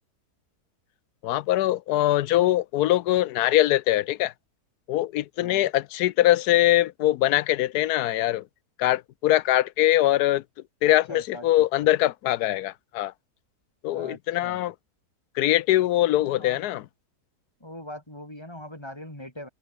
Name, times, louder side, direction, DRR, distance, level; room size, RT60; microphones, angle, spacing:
voice 1, 1.2-4.3 4.9-8.4 8.8-10.4 10.8-13.1 13.8-14.7 15.4-16.8, left 14 dB, 80° left, 1.1 m, -22 dB
voice 2, 10.9-11.9 13.9-14.6 16.2-16.6 17.6-19.5, left 1 dB, 15° left, 5.3 m, -41 dB
omnidirectional pair, 1.7 m